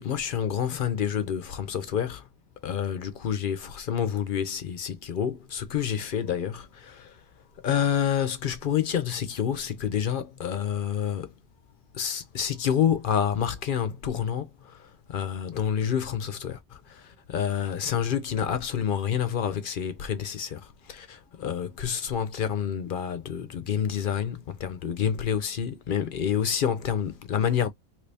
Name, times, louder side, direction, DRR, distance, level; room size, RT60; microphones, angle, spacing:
voice 1, 0.0-2.2 2.6-7.2 7.6-11.3 11.9-27.7, left 8 dB, 60° left, 0.7 m, -28 dB
2.9 x 2.7 x 3.3 m
omnidirectional pair, 1.1 m